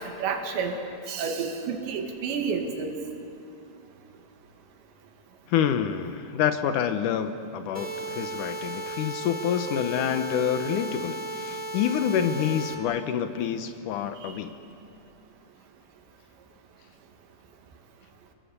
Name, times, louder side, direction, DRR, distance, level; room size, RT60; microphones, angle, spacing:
voice 1, 0.2-0.8 1.1-2.9 14.2-14.3, right 5 dB, 85° right, 3 dB, 4.2 m, -30 dB
voice 2, 5.5-14.5, left 8 dB, 80° left, 8 dB, 1.8 m, -27 dB
sound 1, 7.7-12.7, right 2 dB, 10° left, 2.9 m, -35 dB
29.0 x 23.0 x 8.2 m, 2.6 s
omnidirectional pair, 5.0 m